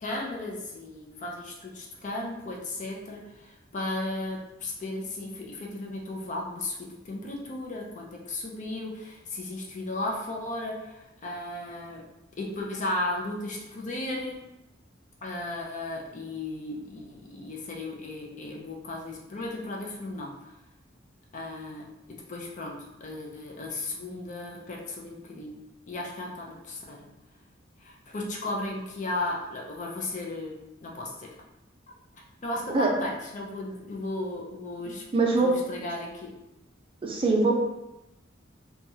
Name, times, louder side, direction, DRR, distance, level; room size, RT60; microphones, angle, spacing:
voice 1, 0.0-12.0 12.4-14.4 15.2-20.3 21.3-22.8 23.0-25.6 25.9-27.0 27.8-30.5 30.8-31.3 32.4-35.0 35.4-36.3, left 2 dB, 40° left, -1 dB, 0.5 m, -35 dB
voice 2, 35.1-35.5 37.0-37.5, right 3 dB, 30° right, 0 dB, 0.4 m, -22 dB
2.9 x 2.3 x 2.7 m, 0.90 s
head